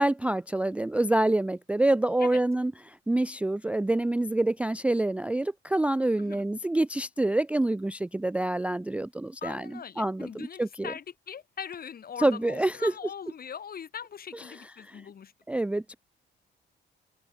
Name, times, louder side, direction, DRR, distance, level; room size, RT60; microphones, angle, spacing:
voice 1, 0.0-10.9 12.2-12.9 14.3-14.4 14.8-15.0 15.5-15.9, right 1 dB, 5° right, 0.3 m, -27 dB
voice 2, 9.4-15.3, left 7 dB, 50° left, 2.1 m, -41 dB
open air
cardioid pair, 90°, 20 cm